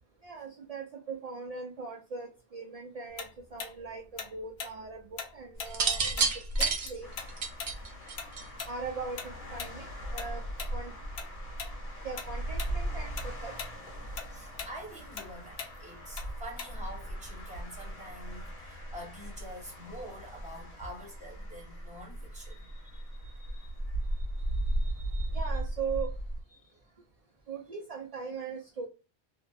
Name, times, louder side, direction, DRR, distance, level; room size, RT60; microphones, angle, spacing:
voice 1, 0.2-6.3 6.6-7.1 8.7-9.9 10.1-10.4 10.7-10.9 12.0-13.5 25.3-26.1 27.5-28.9, right 5 dB, 55° right, 0.4 m, -40 dB
Tick-tock, 3.2-6.3 6.6-11.3 11.6-11.8 12.2-12.8 13.0-17.0, left 6 dB, 80° left, 0.9 m, -41 dB
sound 1, 5.7-8.8 9.9-10.3, right 4 dB, 70° right, 0.9 m, -29 dB
sound 2, 7.0-26.4, right 1 dB, 50° left, 1.0 m, -38 dB
voice 2, 14.3-25.4 26.6-26.8, equal, 5° right, 0.9 m, -47 dB
2.7 x 2.2 x 2.3 m
omnidirectional pair, 1.1 m